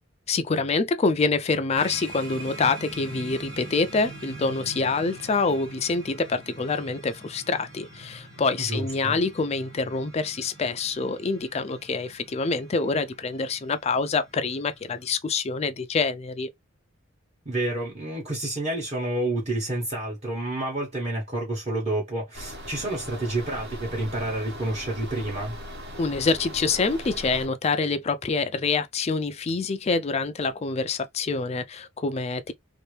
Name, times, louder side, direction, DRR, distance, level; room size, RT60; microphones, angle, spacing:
voice 1, 0.3-16.5 26.0-32.5, left 4 dB, 30° left, 0.4 m, -26 dB
sound 1, 1.8-15.1, right 2 dB, 75° right, 1.5 m, -44 dB
voice 2, 8.6-9.2 17.4-25.6, right 1 dB, 30° right, 1.1 m, -29 dB
sound 2, 22.3-27.5, equal, 55° right, 1.2 m, -39 dB
2.8 x 2.6 x 3.2 m
head